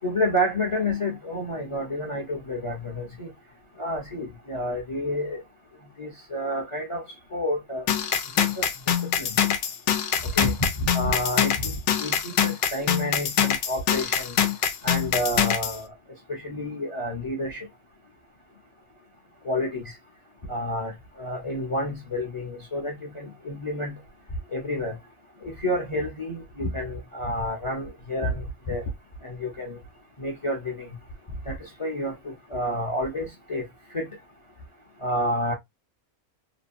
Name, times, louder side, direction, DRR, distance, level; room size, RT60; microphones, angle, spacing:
voice 1, 0.0-3.3 3.8-5.4 6.0-7.0 7.3-7.8 8.4-8.6 9.2-9.4 10.4-10.5 10.8-14.3 14.8-15.9 16.3-17.7 19.4-19.8 20.5-24.0 24.5-25.0 25.4-28.8 29.2-29.8 30.2-30.9 31.5-31.6 31.8-32.1 32.5-33.6 33.9-34.1 35.0-35.5, left 1 dB, 30° left, 0.6 m, -29 dB
sound 1, 7.9-15.8, left 9 dB, 65° left, 0.8 m, -24 dB
3.2 x 2.1 x 2.5 m
omnidirectional pair, 1.6 m